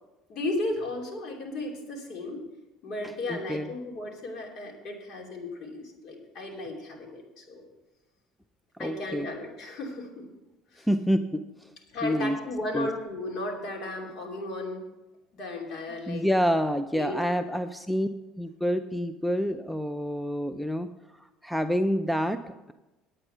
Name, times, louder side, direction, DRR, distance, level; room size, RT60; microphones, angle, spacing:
voice 1, 0.3-2.4 2.8-7.7 8.8-10.2 10.7-10.9 11.9-14.8 15.3-16.3 16.9-17.2, left 2 dB, 50° left, 0 dB, 2.8 m, -35 dB
voice 2, 3.0-3.7 8.8-9.3 10.9-11.7 12.0-12.4 12.7-12.9 16.1-18.1 18.4-20.9 21.2-22.7, equal, ahead, 10 dB, 0.4 m, -28 dB
9.6 x 8.9 x 5.6 m, 1.0 s
cardioid pair, 125°, 0 cm